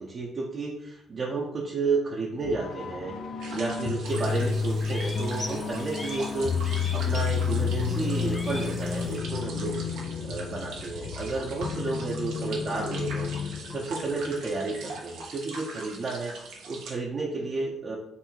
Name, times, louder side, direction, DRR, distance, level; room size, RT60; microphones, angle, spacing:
voice 1, 0.0-3.2 3.5-18.0, right 3 dB, 45° right, -3 dB, 0.7 m, -32 dB
sound 1, 2.4-15.0, left 6 dB, 65° left, 0.4 m, -31 dB
sound 2, 3.4-16.9, right 3 dB, 90° right, 1.1 m, -42 dB
sound 3, 4.1-9.2, left 1 dB, 20° left, 0.7 m, -42 dB
4.1 x 2.7 x 4.4 m, 0.81 s
cardioid pair, 90°, 0 cm